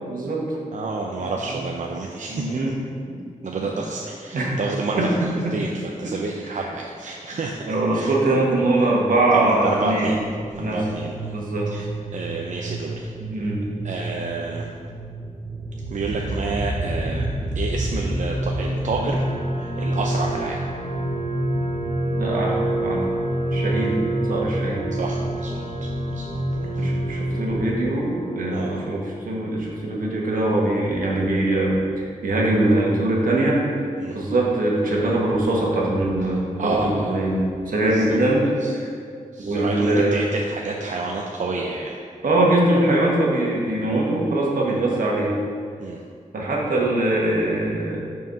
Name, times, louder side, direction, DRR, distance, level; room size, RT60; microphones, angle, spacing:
voice 1, 0.1-0.6 1.2-1.6 2.3-2.7 3.1-3.2 3.5-3.7 4.3-4.5 5.0-5.1 5.4-5.5 6.0-6.1 6.4-6.6 7.6-10.1 10.6-10.8 11.3-11.7 13.2-13.6 22.2-23.0 23.5-23.9 24.3-24.9 26.8-33.9 34.1-38.9 39.4-40.2 42.2-45.3 46.3-48.0, right 1 dB, 85° right, -3 dB, 1.3 m, -22 dB
voice 2, 0.7-2.5 3.4-7.6 7.9-8.1 8.8-8.9 9.3-10.2 10.5-11.4 11.7-13.1 13.8-14.7 15.9-19.3 19.6-20.6 23.8-23.9 24.9-26.9 28.5-28.8 34.0-34.2 36.6-37.2 37.9-38.1 38.6-38.7 39.3-42.0 43.7-43.9 44.6-44.8 45.8-46.0, right 3 dB, 65° right, 0 dB, 0.5 m, -30 dB
sound 1, 10.1-27.9, equal, 30° right, 0.8 m, -28 dB
sound 2, 18.9-29.0, right 3 dB, 40° left, 1.7 m, -31 dB
5.9 x 4.7 x 5.4 m, 2.3 s
wide cardioid pair, 115°, 14 cm